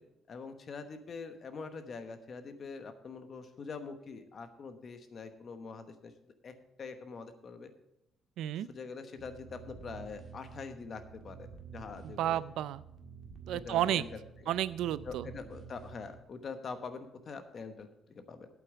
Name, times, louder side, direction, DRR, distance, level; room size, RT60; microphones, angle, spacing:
voice 1, 0.3-6.1 6.4-7.7 8.7-11.5 11.7-12.4 13.5-14.5 15.0-18.5, left 4 dB, 35° left, 8 dB, 1.0 m, -44 dB
voice 2, 8.4-8.7 12.0-12.8 13.5-14.0 14.5-15.3, right 12 dB, 75° right, 17 dB, 0.4 m, -32 dB
sound 1, 9.2-16.2, right 5 dB, 40° right, 1.7 m, -50 dB
8.5 x 8.5 x 7.0 m, 0.86 s
cardioid pair, 170°, 0 cm